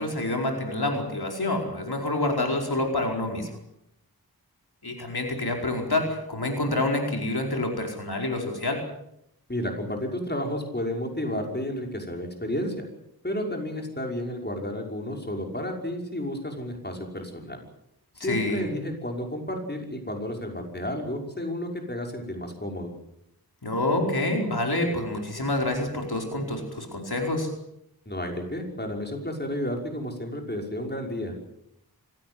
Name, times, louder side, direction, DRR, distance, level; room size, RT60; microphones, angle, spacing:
voice 1, 0.0-3.5 4.8-8.8 18.2-18.7 23.6-27.5, left 2 dB, 85° left, 2 dB, 4.8 m, -27 dB
voice 2, 9.5-12.9 13.2-17.6 18.2-22.9 28.1-31.4, left 1 dB, 25° left, 2 dB, 5.8 m, -32 dB
25.5 x 17.5 x 8.0 m, 0.77 s
wide cardioid pair, 60°, 37 cm